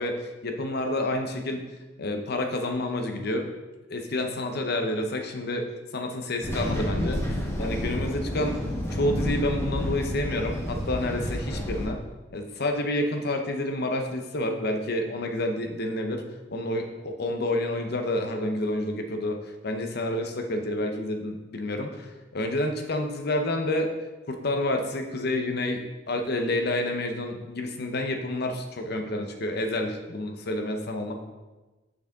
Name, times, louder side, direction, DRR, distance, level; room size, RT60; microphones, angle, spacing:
voice 1, 0.0-1.7 2.0-3.5 3.9-5.7 5.9-8.6 8.9-12.0 12.3-23.9 24.3-31.1, left 1 dB, 55° left, 4 dB, 0.8 m, -29 dB
sound 1, 6.4-11.9, equal, 15° left, 1.0 m, -30 dB
6.4 x 6.1 x 3.6 m, 1.2 s
head